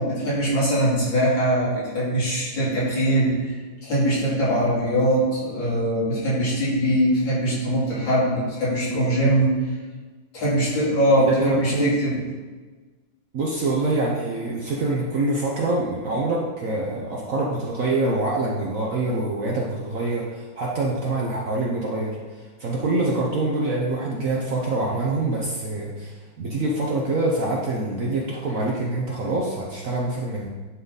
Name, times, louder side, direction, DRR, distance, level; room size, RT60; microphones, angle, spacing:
voice 1, 0.0-9.6 10.3-12.2, right 1 dB, 75° left, -8 dB, 3.4 m, -22 dB
voice 2, 11.3-12.2 13.3-22.2 22.6-30.5, right 2 dB, 55° right, -3 dB, 1.0 m, -25 dB
10.5 x 3.8 x 4.0 m, 1.3 s
omnidirectional pair, 2.2 m